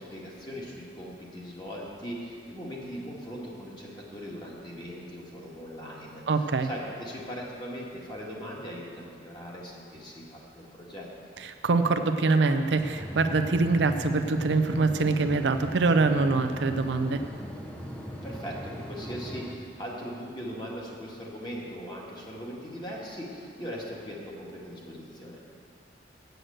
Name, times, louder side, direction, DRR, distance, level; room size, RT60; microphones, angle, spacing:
voice 1, 0.0-11.1 18.2-25.4, equal, 25° left, -4 dB, 1.7 m, -40 dB
voice 2, 6.3-6.7 11.4-17.2, right 3 dB, 75° right, 8 dB, 0.5 m, -24 dB
sound 1, 12.8-19.6, equal, 5° left, 0.7 m, -39 dB
7.9 x 7.9 x 7.8 m, 2.3 s
head